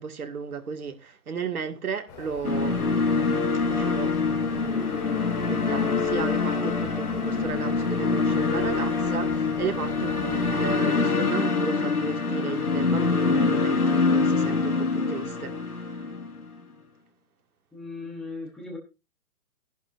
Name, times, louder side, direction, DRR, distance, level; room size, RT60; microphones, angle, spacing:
voice 1, 0.0-3.1 3.6-5.1 5.4-16.1, right 6 dB, 80° right, 2.2 m, -34 dB
sound 1, 2.1-10.8, left 5 dB, 20° left, 1.9 m, -42 dB
sound 2, 2.4-16.5, left 4 dB, 85° left, 4.8 m, -25 dB
voice 2, 17.7-18.8, left 3 dB, ahead, 0.8 m, -37 dB
14.0 x 11.0 x 2.6 m
hypercardioid pair, 160°, 43 cm